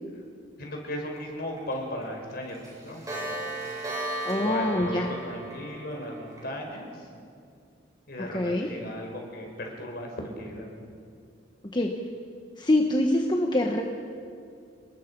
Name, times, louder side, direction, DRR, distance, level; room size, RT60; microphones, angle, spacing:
voice 1, 0.6-3.6 4.4-7.1 8.1-10.9, left 1 dB, 55° left, 1 dB, 5.0 m, -36 dB
Clock, 1.2-1.3 1.6-1.7 2.0-2.1 2.4-6.5, right 2 dB, 20° right, 8.0 m, -35 dB
voice 2, 4.2-5.1 8.3-8.7 11.7-11.9 12.6-13.8, left 1 dB, 25° left, 1 dB, 1.3 m, -24 dB
29.5 x 20.5 x 5.5 m, 2.4 s
head